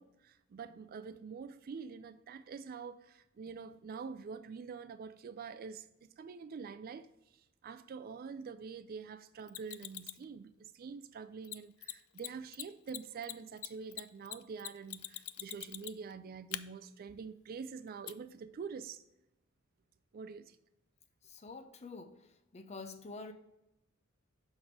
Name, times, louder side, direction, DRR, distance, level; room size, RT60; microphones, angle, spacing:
voice 1, 0.0-7.1 7.6-19.0 20.1-20.6, right 5 dB, 45° right, 0.3 m, -46 dB
Mechanisms, 9.5-10.2 11.4-11.6 11.8-11.9 12.2-12.3 12.5-16.1 16.5-16.6 18.1-18.2, left 16 dB, 90° left, 0.3 m, -42 dB
voice 2, 21.2-23.3, left 3 dB, 30° left, 0.6 m, -47 dB
6.2 x 4.1 x 4.8 m
head